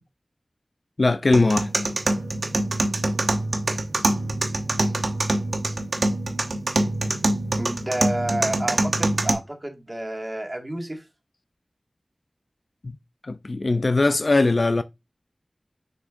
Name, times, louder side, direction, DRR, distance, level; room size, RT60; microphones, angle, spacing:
voice 1, 1.0-1.7 13.2-14.8, left 2 dB, 60° left, 0.4 m, -20 dB
sound 1, 1.3-9.3, right 2 dB, 80° right, 1.0 m, -25 dB
voice 2, 7.6-11.0, right 1 dB, 30° right, 1.9 m, -30 dB
6.6 x 6.0 x 2.6 m
wide cardioid pair, 65°, 0 cm